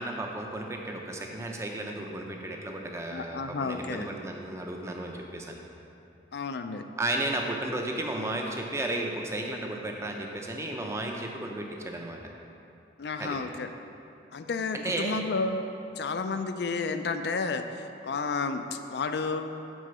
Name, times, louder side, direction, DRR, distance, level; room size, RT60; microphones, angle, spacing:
voice 1, 0.0-5.6 7.0-12.2 13.2-13.4 14.7-15.2, right 1 dB, 15° right, 1 dB, 0.6 m, -33 dB
voice 2, 3.1-4.1 6.3-6.8 13.0-13.7 14.3-15.6 16.0-19.5, left 4 dB, 65° left, 8 dB, 0.4 m, -31 dB
6.2 x 5.0 x 6.8 m, 2.7 s
head